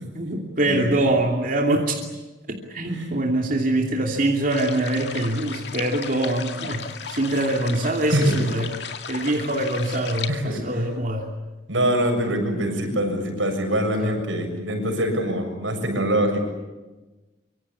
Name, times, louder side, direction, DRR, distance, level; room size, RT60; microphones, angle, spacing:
voice 1, 0.1-2.0 2.5-8.7 9.1-11.3 14.0-14.2, right 1 dB, 45° right, 0 dB, 2.9 m, -24 dB
sound 1, 4.5-10.3, left 6 dB, 60° left, 2.3 m, -35 dB
voice 2, 8.1-8.4 10.3-10.8 11.7-16.4, right 1 dB, 85° right, 4 dB, 7.2 m, -24 dB
25.5 x 24.0 x 8.7 m, 1.1 s
head